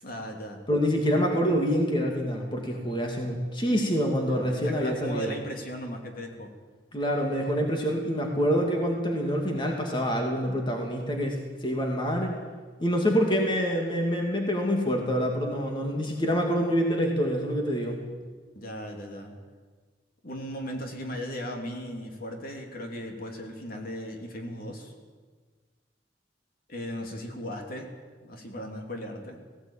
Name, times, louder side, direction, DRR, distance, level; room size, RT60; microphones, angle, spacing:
voice 1, 0.0-0.6 4.3-6.5 18.5-19.4 20.2-24.9 26.7-27.9 28.2-29.4, equal, 55° left, 2 dB, 3.1 m, -37 dB
voice 2, 0.7-5.3 6.9-12.3 12.8-18.0, equal, 30° left, 1 dB, 2.5 m, -26 dB
17.5 x 17.0 x 9.0 m, 1.5 s
head